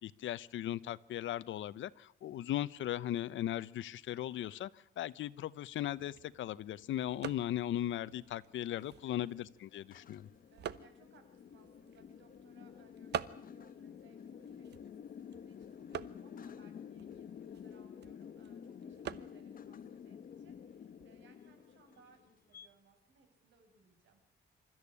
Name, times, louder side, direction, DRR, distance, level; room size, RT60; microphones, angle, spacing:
voice 1, 0.0-10.3, left 12 dB, 80° left, 17 dB, 0.9 m, -38 dB
sound 1, 5.7-21.2, right 9 dB, 60° right, 1.0 m, -49 dB
sound 2, 6.3-22.7, left 8 dB, 45° left, 1.0 m, -51 dB
voice 2, 10.5-24.2, right 4 dB, 75° right, 6 dB, 6.1 m, -66 dB
27.5 x 14.0 x 9.9 m, 0.68 s
cardioid pair, 165°, 20 cm